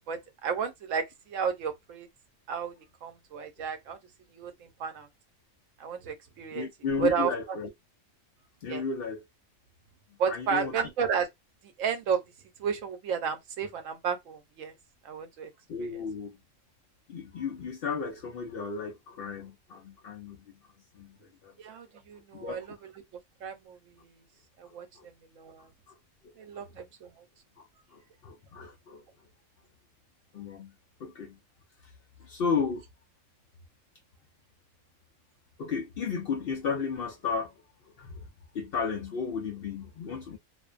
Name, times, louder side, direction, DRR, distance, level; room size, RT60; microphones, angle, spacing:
voice 1, 0.1-2.1 2.5-2.7 3.0-4.0 4.3-5.1 5.8-6.7 7.0-7.3 8.7-8.8 10.2-11.3 11.8-12.2 12.6-14.7 15.0-15.5 15.8-15.9 21.6-22.7 23.4-23.8 24.6-24.9 25.4-25.7 26.4-27.1, right 6 dB, 75° right, 1.0 m, -32 dB
voice 2, 6.5-7.7 8.6-9.2 10.3-10.8 15.7-16.4 17.1-20.6 20.9-21.5 22.3-22.6 24.6-25.1 25.6-26.0 26.2-26.6 27.6-29.0 30.3-30.7 31.0-31.4 31.8-31.9 32.2-32.8 35.6-37.6 38.0-38.3 38.5-40.4, left 5 dB, 60° left, 0.6 m, -34 dB
2.5 x 2.1 x 2.3 m
omnidirectional pair, 1.4 m